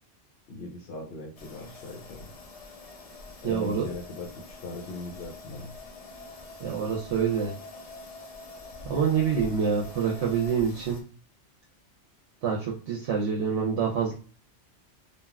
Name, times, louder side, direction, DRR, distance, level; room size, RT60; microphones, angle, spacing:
voice 1, 0.5-2.3 3.4-5.8, left 3 dB, 65° left, 3 dB, 0.8 m, -40 dB
sound 1, 1.4-11.0, left 3 dB, 50° left, 0.4 m, -45 dB
voice 2, 3.4-3.9 6.6-7.5 8.8-11.0 12.4-14.1, right 6 dB, 80° right, -2 dB, 0.9 m, -26 dB
3.4 x 2.3 x 2.3 m, 0.39 s
omnidirectional pair, 1.2 m